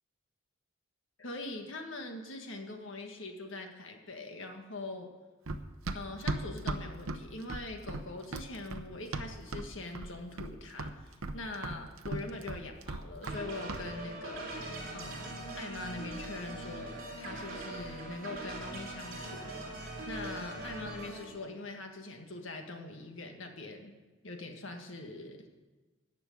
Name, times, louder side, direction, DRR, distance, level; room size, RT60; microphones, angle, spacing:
voice 1, 1.2-5.1 5.9-23.9 24.2-25.5, left 2 dB, 70° left, 4 dB, 1.7 m, -43 dB
Run, 5.5-9.7 10.0-10.5 10.8-13.4 13.7-13.9, right 2 dB, 90° right, 0.8 m, -37 dB
sound 1, 13.2-21.2, right 2 dB, 45° right, 3.6 m, -42 dB
14.0 x 6.3 x 9.3 m, 1.2 s
head